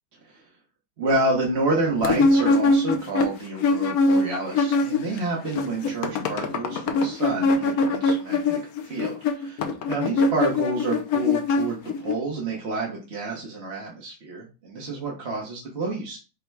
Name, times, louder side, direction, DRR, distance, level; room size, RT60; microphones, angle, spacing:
voice 1, 1.0-16.2, right 2 dB, 45° right, -2 dB, 1.1 m, -29 dB
sound 1, 2.0-5.2 5.4-12.1, left 3 dB, 65° left, 1.0 m, -23 dB
5.2 x 2.2 x 4.5 m, 0.32 s
omnidirectional pair, 1.8 m